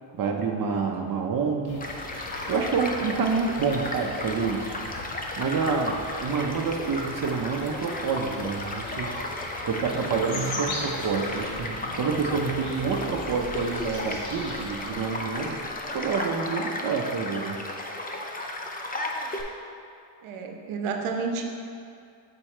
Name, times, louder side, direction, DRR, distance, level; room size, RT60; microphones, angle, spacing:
voice 1, 0.1-1.9 2.5-4.7 5.3-9.1 9.6-15.6 15.9-17.6, right 5 dB, 45° right, 2 dB, 0.7 m, -28 dB
sound 1, 1.7-14.9, left 2 dB, 75° left, 1.4 m, -41 dB
Child speech kid speaking / Stream / Car passing by, 1.8-19.4, left 2 dB, 20° left, 0.5 m, -34 dB
voice 2, 9.8-10.8 20.2-21.4, right 4 dB, 80° right, 3 dB, 0.8 m, -33 dB
sound 2, 10.9-16.5, equal, ahead, 1.2 m, -45 dB
6.7 x 4.5 x 4.3 m, 2.4 s
cardioid pair, 130°, 49 cm